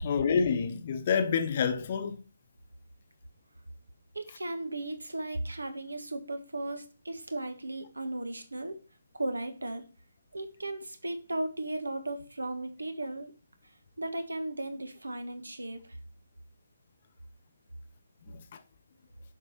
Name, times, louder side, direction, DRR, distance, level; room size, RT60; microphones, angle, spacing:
voice 1, 0.0-2.2, left 6 dB, 35° left, 0.9 m, -27 dB
voice 2, 4.1-8.8 9.1-9.8 10.3-13.3 14.0-16.0, right 2 dB, 75° right, 1.4 m, -36 dB
7.4 x 5.3 x 4.3 m
figure-of-eight pair, 145°, 0 cm